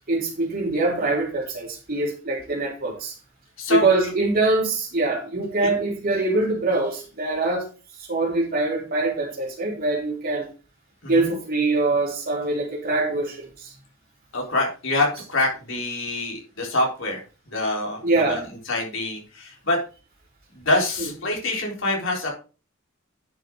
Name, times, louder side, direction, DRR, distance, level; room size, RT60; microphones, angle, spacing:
voice 1, 0.0-3.1 3.7-7.7 8.1-10.5 11.1-13.7 18.0-18.5, right 2 dB, 50° right, 3.8 m, -23 dB
voice 2, 3.6-4.1 11.0-11.3 14.3-17.2 17.5-19.8 20.5-22.3, left 2 dB, 70° left, 3.9 m, -26 dB
10.0 x 6.5 x 3.8 m
head